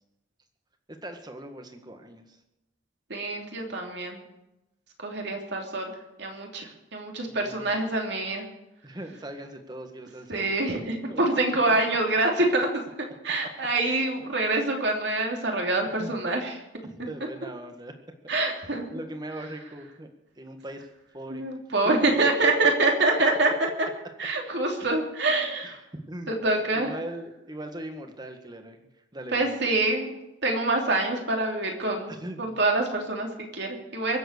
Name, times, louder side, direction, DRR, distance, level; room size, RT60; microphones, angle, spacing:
voice 1, 1.0-2.4 7.3-7.9 8.8-10.6 11.1-11.2 15.8-16.2 16.9-17.9 18.6-20.1 20.4-20.9 21.1-21.4 24.8-25.0 25.6-28.8 29.1-29.5 32.1-32.6, right 1 dB, 20° right, 5 dB, 1.7 m, -40 dB
voice 2, 3.1-4.2 5.0-8.4 10.3-12.8 13.2-16.6 18.3-18.8 21.3-23.5 24.2-25.8 26.3-26.9 29.3-30.1 30.4-32.1 32.4-34.2, right 2 dB, 60° right, 1 dB, 3.1 m, -26 dB
23.5 x 7.9 x 6.8 m, 0.93 s
head